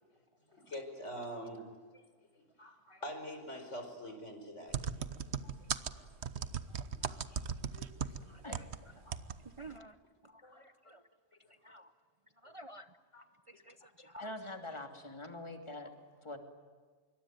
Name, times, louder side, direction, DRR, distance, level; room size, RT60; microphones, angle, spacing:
voice 1, 0.5-1.7 1.9-2.0 2.6-4.8 5.1-5.9 6.4-7.4 7.7-8.4 9.0-9.2 10.4-10.6 11.4-11.8 13.1-13.2, equal, 75° left, 5.2 m, -47 dB
sound 1, 4.7-8.8 9.1-9.4 9.6-9.7, right 7 dB, 65° right, 1.2 m, -37 dB
voice 2, 8.2-8.6 9.4-11.0 11.5-11.9 12.4-13.0 13.5-14.3 14.7-14.8, right 2 dB, 30° right, 0.8 m, -53 dB
voice 3, 14.2-15.9 16.2-16.4, left 2 dB, 25° left, 2.8 m, -44 dB
26.0 x 23.5 x 9.3 m
omnidirectional pair, 1.3 m